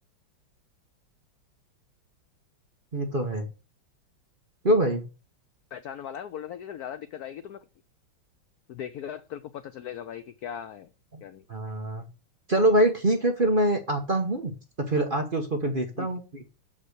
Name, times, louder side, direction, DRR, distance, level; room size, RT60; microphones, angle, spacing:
voice 1, 2.9-3.5 4.6-5.0 11.1-11.2 11.5-12.1 12.5-14.5 14.8-16.2, right 1 dB, 35° right, 0.9 m, -24 dB
voice 2, 5.7-7.6 8.7-10.9 11.2-11.5 16.0-16.1, left 9 dB, 75° left, 0.8 m, -38 dB
6.7 x 5.6 x 6.6 m
omnidirectional pair, 2.2 m